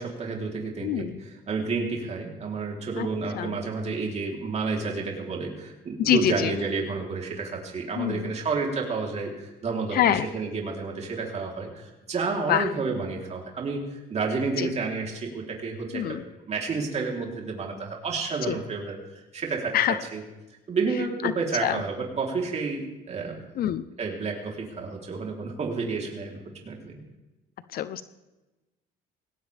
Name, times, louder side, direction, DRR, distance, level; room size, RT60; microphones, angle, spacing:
voice 1, 0.0-16.0 16.5-19.0 19.3-20.2 20.7-23.4 24.0-27.0, right 4 dB, 40° right, 0 dB, 3.8 m, -30 dB
voice 2, 0.8-1.2 3.0-3.1 3.4-3.5 6.0-6.5 8.0-8.3 9.9-10.3 12.5-12.7 14.6-14.7 15.9-16.2 18.5-18.6 19.7-20.0 21.6-21.8 23.6-23.8 27.7-28.0, left 11 dB, 65° left, 13 dB, 0.8 m, -24 dB
19.5 x 18.0 x 3.6 m, 1.1 s
cardioid pair, 110°, 17 cm